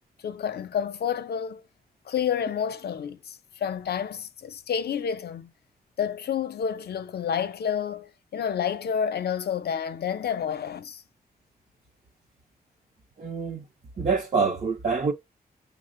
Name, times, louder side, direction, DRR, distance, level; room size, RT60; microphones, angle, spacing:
voice 1, 0.2-1.6 2.1-5.5 6.0-11.0, left 8 dB, 80° left, 0.6 m, -29 dB
voice 2, 13.2-13.6 14.0-15.1, right 5 dB, 45° right, 0.6 m, -26 dB
5.7 x 2.0 x 3.7 m
wide cardioid pair, 100°, 17 cm